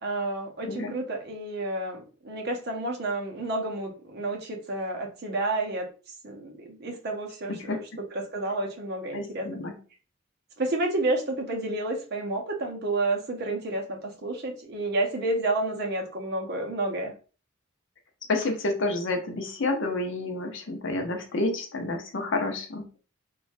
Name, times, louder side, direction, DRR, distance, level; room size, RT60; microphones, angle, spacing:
voice 1, 0.0-5.9 6.2-7.8 8.1-9.5 10.6-17.1, right 2 dB, 50° right, 2 dB, 0.6 m, -30 dB
voice 2, 9.1-9.7 18.3-22.8, left 2 dB, 65° left, 4 dB, 0.6 m, -29 dB
3.2 x 2.3 x 2.4 m, 0.37 s
head